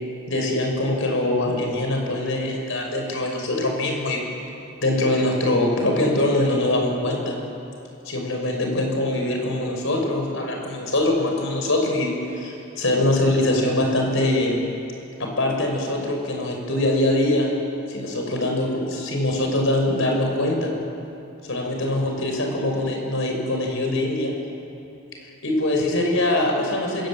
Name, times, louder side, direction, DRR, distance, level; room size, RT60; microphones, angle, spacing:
voice 1, 0.3-4.2 4.8-7.4 8.0-14.6 15.2-17.5 17.9-20.7 21.5-24.4 25.4-27.1, left 1 dB, 60° left, 1 dB, 6.1 m, -23 dB
27.0 x 23.0 x 9.1 m, 2.8 s
head